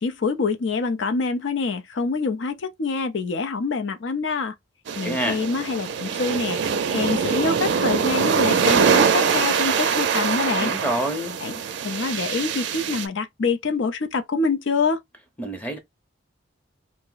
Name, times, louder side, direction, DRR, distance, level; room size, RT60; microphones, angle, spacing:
voice 1, 0.0-4.5 5.0-6.6 6.9-10.7 11.4-11.5 11.8-15.0, left 4 dB, 70° left, 0.5 m, -25 dB
sound 1, 4.9-13.1, right 6 dB, 65° right, 0.4 m, -23 dB
voice 2, 5.0-5.4 10.6-11.4 15.4-15.8, right 1 dB, 10° left, 0.6 m, -27 dB
2.5 x 2.0 x 3.8 m
head